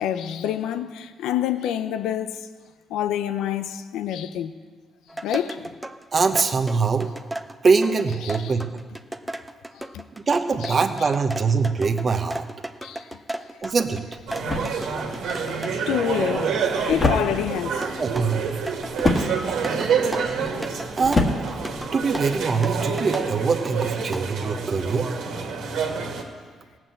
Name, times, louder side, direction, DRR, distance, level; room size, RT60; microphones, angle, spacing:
voice 1, 0.0-2.5 2.9-4.5 5.2-5.8 8.2-8.5 9.7-10.0 10.6-10.8 12.8-13.1 13.4-13.5 14.6-14.7 15.9-16.6 16.9-17.9, left 10 dB, 90° left, 0.6 m, -27 dB
sound 1, 5.1-15.8 17.8-24.5, right 1 dB, 10° right, 0.6 m, -35 dB
voice 2, 6.1-7.1 7.6-8.7 10.1-12.5 13.6-14.0 18.0-18.6 19.2-19.3 19.6-19.7 21.0-21.3 21.9-25.1, right 5 dB, 40° right, 1.0 m, -23 dB
sound 2, 13.6-22.5, left 2 dB, 30° left, 1.7 m, -29 dB
sound 3, 14.3-26.2, right 5 dB, 80° right, 1.8 m, -28 dB
17.0 x 6.1 x 7.8 m
cardioid pair, 90°, 0 cm